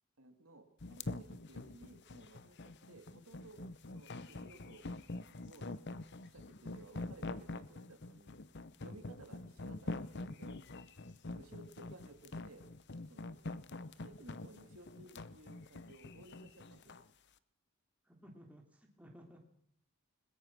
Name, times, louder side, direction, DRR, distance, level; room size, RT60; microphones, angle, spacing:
voice 1, 0.2-3.6 3.9-4.9 5.3-8.4 8.8-10.6 11.4-12.7 13.1-13.4 13.9-17.0, right 2 dB, 70° right, 6 dB, 2.7 m, -58 dB
sound 1, 0.8-17.1, left 2 dB, 50° left, 0.9 m, -45 dB
voice 2, 18.0-19.4, equal, 5° right, 1 dB, 3.0 m, -57 dB
21.5 x 21.0 x 6.1 m, 0.68 s
head